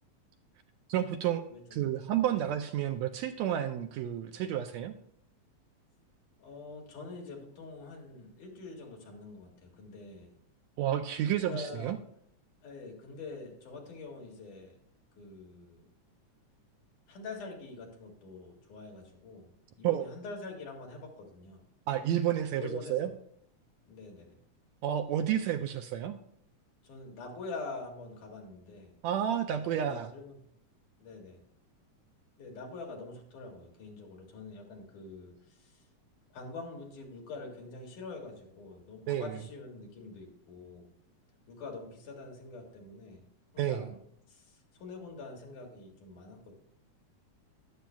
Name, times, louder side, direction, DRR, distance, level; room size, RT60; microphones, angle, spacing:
voice 1, 0.9-1.4 1.7-5.0 10.8-12.0 19.8-20.1 21.9-23.1 24.8-26.2 29.0-30.1 39.1-39.4 43.6-43.8, right 10 dB, 80° right, 7 dB, 1.6 m, -30 dB
voice 2, 1.5-1.9 2.3-2.5 6.4-10.3 11.5-11.9 12.6-14.8 15.2-15.9 17.1-19.5 19.8-21.6 22.5-23.1 23.9-24.3 26.8-28.9 29.6-30.4 31.0-31.4 32.4-35.8 36.3-40.9 41.5-43.2 43.5-44.0 44.3-46.5, left 3 dB, 80° left, 0 dB, 3.8 m, -45 dB
13.5 x 11.5 x 2.3 m, 0.68 s
omnidirectional pair, 3.5 m